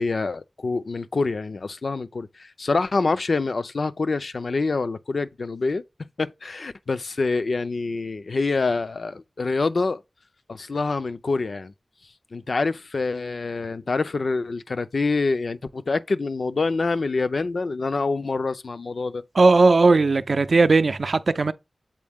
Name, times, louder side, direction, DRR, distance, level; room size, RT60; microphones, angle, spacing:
voice 1, 0.0-5.8 6.2-10.0 10.5-11.7 12.3-19.2, left 3 dB, 80° left, 0.5 m, -26 dB
voice 2, 19.4-21.5, right 3 dB, 75° right, 0.4 m, -17 dB
7.5 x 4.2 x 3.5 m
cardioid pair, 45°, 0 cm